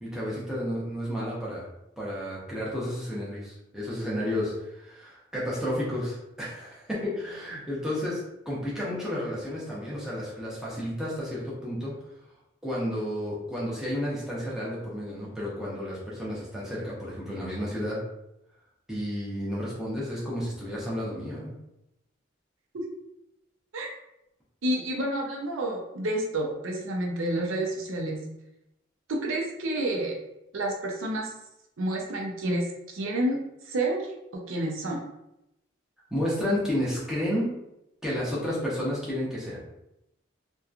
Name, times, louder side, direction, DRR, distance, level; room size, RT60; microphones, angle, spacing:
voice 1, 0.0-1.7 2.0-11.9 12.6-18.0 18.9-21.5 36.1-37.5 38.0-39.7, equal, 5° right, -7 dB, 0.7 m, -31 dB
voice 2, 24.6-28.2 29.1-30.1 30.5-31.3 31.8-32.7 32.9-33.4 33.7-34.0 34.3-35.0, right 1 dB, 90° right, 0 dB, 0.6 m, -29 dB
2.8 x 2.2 x 2.4 m, 0.86 s
head